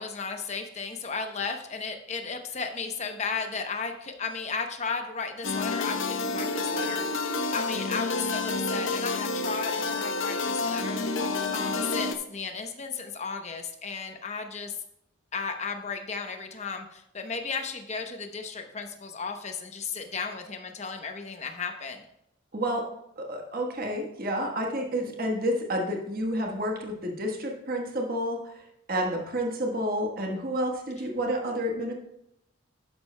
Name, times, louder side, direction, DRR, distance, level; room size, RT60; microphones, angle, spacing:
voice 1, 0.0-14.8 15.3-22.0, left 5 dB, 30° left, 5 dB, 0.8 m, -35 dB
sound 1, 5.4-12.1, left 3 dB, 65° left, 0.8 m, -29 dB
voice 2, 22.5-22.8 23.2-28.6 28.9-31.9, equal, 45° right, 1 dB, 1.4 m, -30 dB
12.0 x 10.0 x 2.2 m, 0.79 s
head